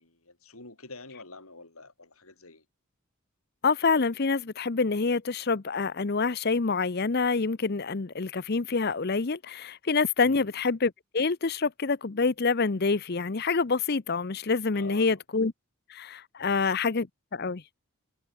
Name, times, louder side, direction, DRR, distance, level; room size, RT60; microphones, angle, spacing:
voice 1, 0.0-2.6 10.2-10.5 14.7-15.2 16.4-16.7, left 3 dB, 80° left, 6.4 m, -47 dB
voice 2, 3.6-15.5 15.9-17.1 17.3-17.6, left 4 dB, 45° left, 0.7 m, -27 dB
head